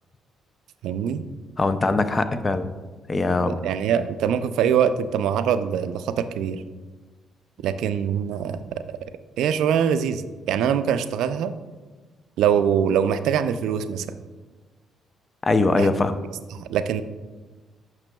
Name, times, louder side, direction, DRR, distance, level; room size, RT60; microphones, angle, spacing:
voice 1, 0.8-1.2 3.5-6.6 7.6-8.8 9.4-10.2 10.5-11.5 12.4-14.1 15.8-15.9 16.5-17.0, right 8 dB, 85° right, 11 dB, 0.3 m, -23 dB
voice 2, 1.6-2.7 3.1-3.6 15.4-16.2, left 3 dB, 30° left, 10 dB, 0.5 m, -21 dB
8.8 x 6.0 x 2.2 m, 1.3 s
cardioid pair, 90°, 0 cm